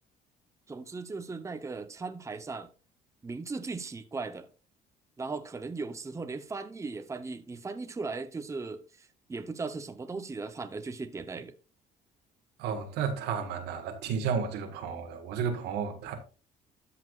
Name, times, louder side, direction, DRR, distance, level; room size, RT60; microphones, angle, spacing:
voice 1, 0.7-2.7 3.2-4.5 5.2-11.5, right 4 dB, 15° right, 0.8 m, -38 dB
voice 2, 12.6-16.1, right 6 dB, 90° right, 1.7 m, -32 dB
13.0 x 5.9 x 2.4 m
cardioid pair, 110°, 17 cm